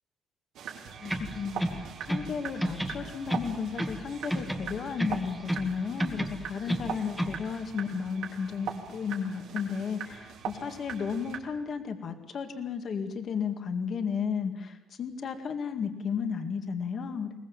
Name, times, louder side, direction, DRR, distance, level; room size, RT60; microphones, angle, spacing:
sound 1, 0.5-11.4, right 7 dB, 75° right, 3.4 m, -41 dB
voice 1, 1.0-17.4, left 6 dB, 50° left, 6 dB, 2.0 m, -34 dB
sound 2, 1.0-2.3 2.6-4.0 4.3-5.7 6.0-7.4, equal, ahead, 1.6 m, -32 dB
22.0 x 20.5 x 7.3 m, 0.98 s
cardioid pair, 130°, 0 cm